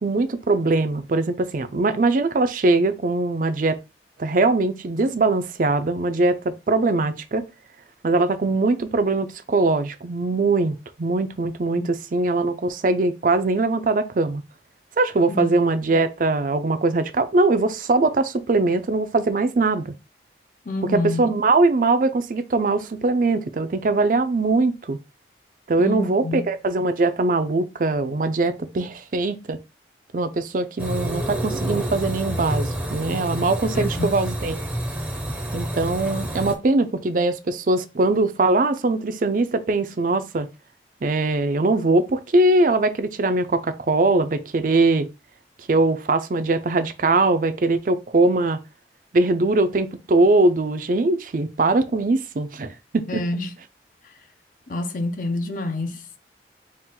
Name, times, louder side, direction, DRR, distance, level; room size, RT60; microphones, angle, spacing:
voice 1, 0.0-3.8 4.2-7.4 8.0-14.4 15.0-19.9 20.9-25.0 25.7-29.6 30.1-34.6 35.5-40.5 41.0-45.1 45.7-48.6 49.1-53.2, right 2 dB, 50° right, 0.5 m, -21 dB
voice 2, 20.7-21.2 25.8-26.5 33.7-34.2 53.1-53.5 54.7-56.1, left 2 dB, 50° left, 0.5 m, -28 dB
sound 1, 30.8-36.5, right 1 dB, 5° right, 0.6 m, -28 dB
4.3 x 2.4 x 3.7 m
head